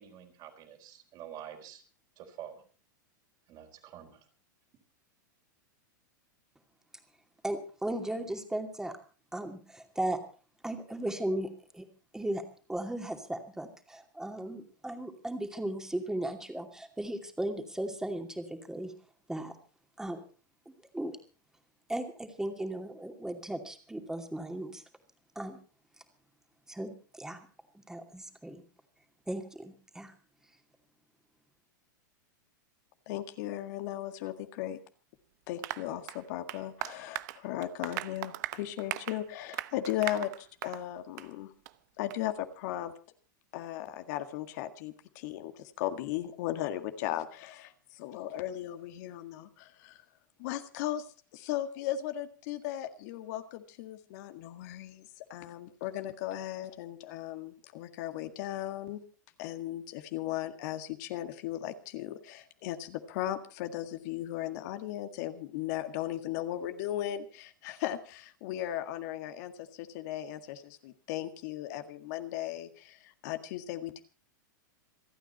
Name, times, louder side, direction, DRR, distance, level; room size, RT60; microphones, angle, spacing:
voice 1, 0.0-1.8 2.2-2.6 3.5-4.3, right 10 dB, 45° right, 4 dB, 4.2 m, -47 dB
voice 2, 7.4-9.0 9.3-10.2 10.6-11.9 12.1-18.9 19.3-19.5 20.0-20.2 20.7-21.2 21.9-24.8 25.4-25.6 26.7-27.5 27.9-28.6 29.3-30.1, right 1 dB, 5° right, 5 dB, 2.6 m, -36 dB
voice 3, 33.0-34.8 35.5-41.5 42.0-42.9 43.5-50.0 50.4-51.1 51.3-59.0 59.4-74.0, left 12 dB, 60° left, 8 dB, 1.8 m, -37 dB
Applause, 35.6-40.9 41.2-41.3 41.7-41.8 42.1-42.2, right 17 dB, 60° right, 0.8 m, -39 dB
27.5 x 9.3 x 4.3 m, 0.39 s
hypercardioid pair, 110°, 11 cm